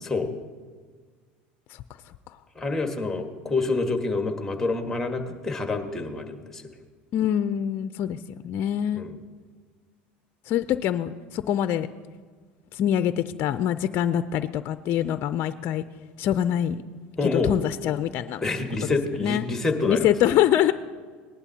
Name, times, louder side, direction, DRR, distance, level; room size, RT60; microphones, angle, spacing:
voice 1, 2.5-6.7 8.9-9.1 17.2-17.5 18.4-20.3, left 3 dB, 10° left, 5 dB, 1.6 m, -27 dB
voice 2, 7.1-8.2 8.4-9.1 10.5-11.9 12.7-15.8 16.2-16.8 17.2-18.4 18.8-18.9 19.2-19.5 19.9-20.7, left 11 dB, 50° left, 12 dB, 0.4 m, -24 dB
19.0 x 11.0 x 2.8 m, 1.6 s
hypercardioid pair, 95°, 5 cm